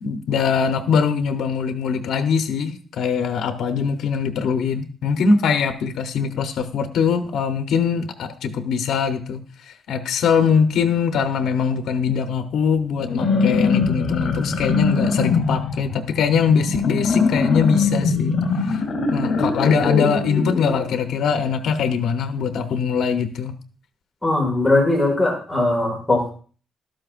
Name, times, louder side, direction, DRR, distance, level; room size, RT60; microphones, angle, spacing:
voice 1, 0.0-9.4 9.9-18.8 19.1-23.5, left 6 dB, 70° left, 7 dB, 0.9 m, -22 dB
sound 1, 13.0-20.8, left 4 dB, 45° left, 3.3 m, -22 dB
voice 2, 24.2-26.3, left 2 dB, 10° left, -1 dB, 2.0 m, -19 dB
13.0 x 12.0 x 2.5 m, 0.39 s
wide cardioid pair, 180°, 0 cm